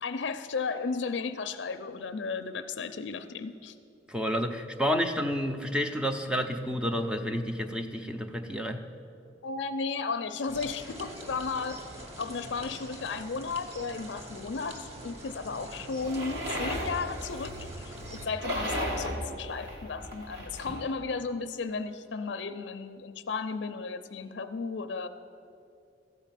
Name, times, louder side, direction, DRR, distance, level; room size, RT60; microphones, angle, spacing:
voice 1, 0.0-3.8 9.4-11.8 12.2-25.1, left 4 dB, 75° left, 10 dB, 0.5 m, -34 dB
voice 2, 4.1-8.8, equal, 5° right, 6 dB, 0.6 m, -30 dB
sound 1, 10.5-18.3, right 1 dB, 35° right, 1.5 m, -44 dB
sound 2, 16.0-20.8, equal, 70° right, 2.0 m, -36 dB
14.5 x 5.0 x 9.0 m, 2.5 s
head